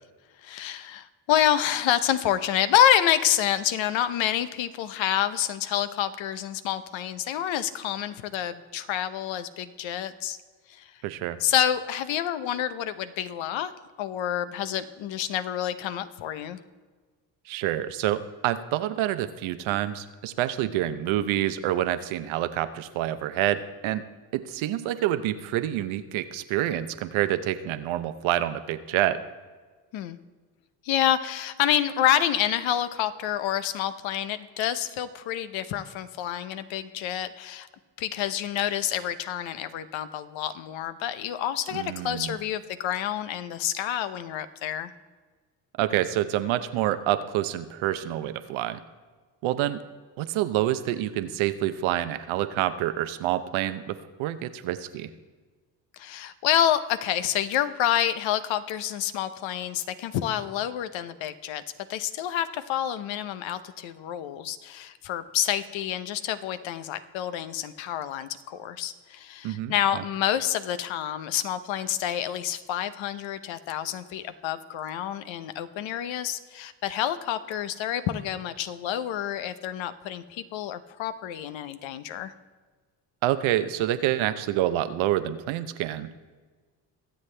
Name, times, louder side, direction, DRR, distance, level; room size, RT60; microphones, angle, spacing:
voice 1, 0.4-10.4 10.7-10.9 11.4-13.7 14.0-16.6 29.9-30.2 30.8-37.7 38.0-44.9 55.9-61.6 61.9-82.3, left 11 dB, 75° left, 12 dB, 0.8 m, -28 dB
voice 2, 11.0-11.4 17.5-24.0 24.3-29.2 41.7-42.4 45.8-48.8 49.4-49.8 50.2-55.1 69.4-70.0 83.2-86.1, right 13 dB, 80° right, 12 dB, 0.8 m, -27 dB
22.5 x 7.9 x 3.3 m, 1.4 s
supercardioid pair, 70°, 47 cm